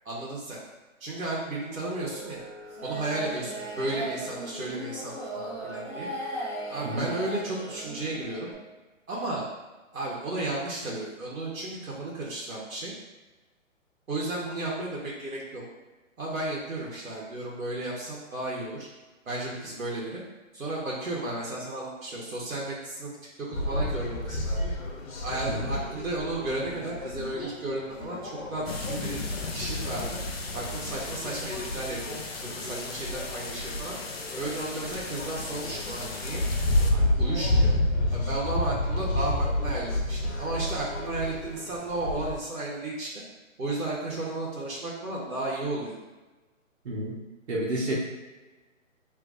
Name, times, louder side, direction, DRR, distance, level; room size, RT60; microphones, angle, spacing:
voice 1, 0.0-0.6 1.0-2.4 2.8-6.1 6.7-8.5 9.1-9.5 9.9-12.9 14.1-15.6 16.2-18.9 19.2-20.2 20.5-23.1 23.4-24.6 25.2-29.2 29.5-30.2 30.5-32.2 32.4-34.0 34.4-36.4 36.9-37.7 38.1-43.1 43.6-46.0, right 2 dB, 85° right, -5 dB, 1.4 m, -33 dB
sound 1, 1.9-8.5, right 1 dB, 10° right, 0.8 m, -37 dB
sound 2, 23.5-42.3, left 1 dB, 85° left, 1.0 m, -30 dB
sound 3, 28.7-36.9, left 3 dB, 50° left, 0.5 m, -36 dB
voice 2, 46.8-47.2 47.5-47.9, right 1 dB, 55° right, -5 dB, 1.4 m, -30 dB
4.8 x 3.2 x 2.6 m, 1.2 s
hypercardioid pair, 175°, 40 cm